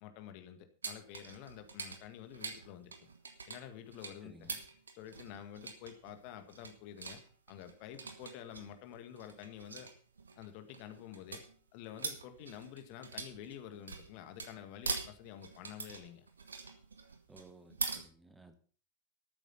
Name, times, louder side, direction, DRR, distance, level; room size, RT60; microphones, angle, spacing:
voice 1, 0.0-3.1 3.5-4.5 4.9-7.2 7.5-9.9 10.4-11.4 11.7-16.3, left 10 dB, 45° left, 9 dB, 1.8 m, -49 dB
sound 1, 0.8-18.0, right 4 dB, 75° right, 1.9 m, -44 dB
voice 2, 4.2-4.6 17.3-18.5, right 2 dB, 5° right, 7 dB, 1.6 m, -57 dB
13.0 x 9.1 x 5.8 m, 0.42 s
figure-of-eight pair, 90°, 0 cm